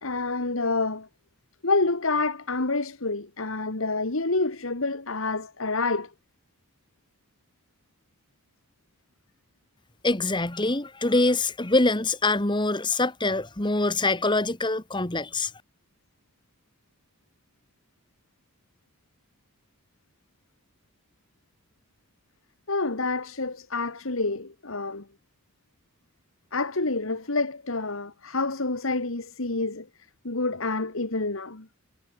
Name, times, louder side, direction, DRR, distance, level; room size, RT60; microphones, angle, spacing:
voice 1, 0.0-1.1 1.6-6.1 22.7-25.1 26.5-29.9 30.2-31.7, left 3 dB, 70° left, 1.9 m, -28 dB
voice 2, 10.0-15.5, left 2 dB, 20° left, 1.5 m, -24 dB
head